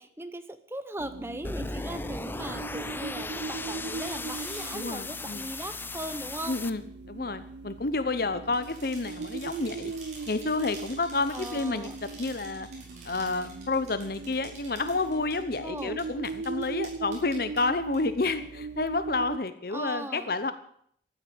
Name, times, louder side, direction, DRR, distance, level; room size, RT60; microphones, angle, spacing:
voice 1, 0.0-6.6 11.3-11.9 15.6-16.0 19.7-20.3, right 1 dB, 15° right, 10 dB, 1.0 m, -39 dB
sound 1, 1.0-19.4, right 4 dB, 75° right, 0.6 m, -40 dB
sound 2, 1.4-6.7, left 3 dB, 10° left, 0.5 m, -37 dB
sound 3, 4.3-4.7 8.4-17.6 17.9-18.0 18.3-18.4, right 3 dB, 40° right, 5.8 m, -48 dB
voice 2, 4.7-5.5 6.5-9.9 10.3-11.9 12.2-12.7 13.0-20.5, left 3 dB, 55° left, 12 dB, 0.9 m, -30 dB
13.5 x 9.8 x 8.8 m, 0.65 s
head